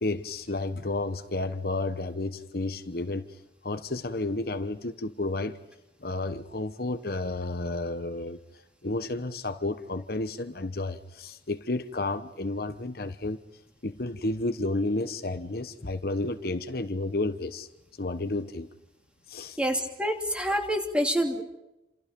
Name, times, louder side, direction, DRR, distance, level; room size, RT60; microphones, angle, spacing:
voice 1, 0.0-3.3 3.6-5.6 6.0-8.4 8.8-13.4 13.8-17.7 18.0-18.7 19.3-19.6, left 2 dB, 55° left, 9 dB, 1.1 m, -31 dB
voice 2, 19.6-21.4, equal, 5° right, 3 dB, 2.9 m, -27 dB
29.0 x 27.5 x 5.3 m, 0.93 s
head